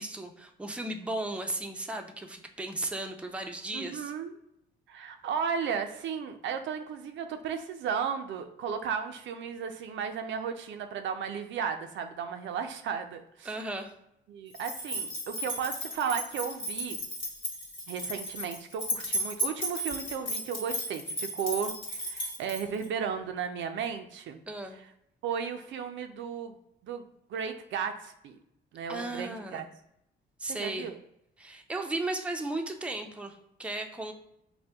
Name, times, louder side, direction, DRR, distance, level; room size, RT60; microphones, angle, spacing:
voice 1, 0.0-4.1 13.5-13.9 24.5-24.8 28.9-29.6 30.4-30.9 31.4-34.1, right 2 dB, 5° right, 4 dB, 0.5 m, -35 dB
voice 2, 3.7-4.3 4.9-13.5 14.3-17.0 17.9-24.4 25.2-26.6 26.8-28.4 28.7-29.7 30.5-31.0, right 7 dB, 70° right, 6 dB, 0.4 m, -34 dB
sound 1, 14.5-22.9, equal, 75° left, 1.3 m, -35 dB
4.1 x 2.1 x 3.4 m, 0.79 s
cardioid pair, 90°, 20 cm